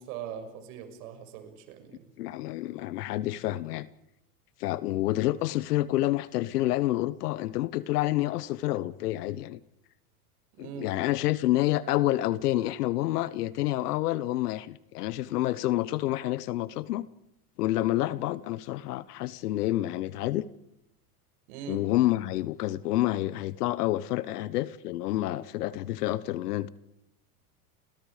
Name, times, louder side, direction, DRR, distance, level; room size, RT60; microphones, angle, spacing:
voice 1, 0.0-2.0 10.5-10.9 21.5-21.8, right 8 dB, 65° right, 6 dB, 6.8 m, -41 dB
voice 2, 2.2-3.9 4.6-9.6 10.6-17.1 17.6-20.5 21.7-26.7, left 15 dB, 75° left, 17 dB, 1.2 m, -28 dB
30.0 x 25.5 x 5.1 m, 0.83 s
supercardioid pair, 115°, 47 cm